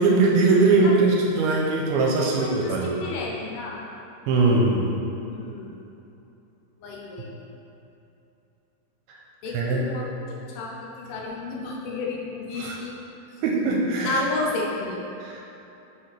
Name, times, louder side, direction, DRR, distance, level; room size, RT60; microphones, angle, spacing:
voice 1, 0.0-3.0 4.3-4.9 9.5-9.9 12.5-12.8 13.4-14.1 15.2-15.4, right 3 dB, 80° right, -1 dB, 2.4 m, -21 dB
voice 2, 2.2-3.8 5.2-5.7 6.8-7.5 9.4-13.0 14.0-15.1, left 2 dB, 80° left, -3 dB, 2.6 m, -32 dB
6.0 x 5.7 x 3.3 m, 2.9 s
omnidirectional pair, 4.5 m